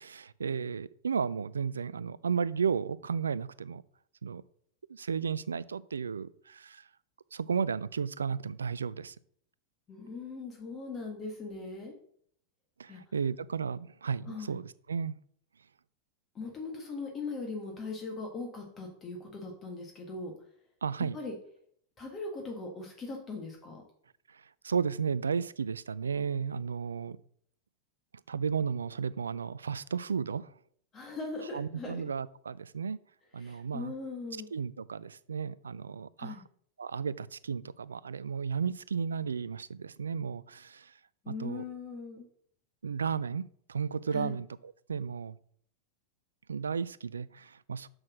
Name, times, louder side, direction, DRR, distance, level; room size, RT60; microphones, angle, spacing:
voice 1, 0.0-3.8 4.2-4.4 4.9-6.8 7.3-9.1 12.8-15.1 20.8-21.2 24.6-27.2 28.3-30.5 31.5-33.0 33.3-33.9 34.5-36.4 36.8-40.9 41.3-41.6 42.8-43.4 43.7-45.3 46.5-47.9, right 6 dB, 70° right, 19 dB, 0.3 m, -33 dB
voice 2, 9.9-11.9 12.9-13.0 14.2-14.6 16.3-20.3 21.1-21.3 22.0-23.8 30.9-32.0 33.4-34.5 36.2-36.4 41.2-42.3 44.1-44.4, left 3 dB, 25° left, 0 dB, 1.7 m, -40 dB
6.4 x 6.1 x 6.1 m, 0.63 s
figure-of-eight pair, 90°, 0 cm